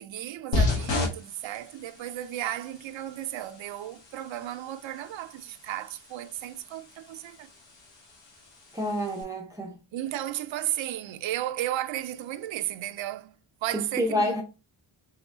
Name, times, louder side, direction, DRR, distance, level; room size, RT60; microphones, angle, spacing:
voice 1, 0.0-7.5 9.9-14.4, right 13 dB, 85° right, 0.5 m, -34 dB
sound 1, 0.5-9.2, left 3 dB, 70° left, 1.3 m, -34 dB
voice 2, 8.7-9.8 13.7-14.4, equal, 10° right, 0.6 m, -28 dB
3.5 x 3.1 x 3.5 m
wide cardioid pair, 140°, 45 cm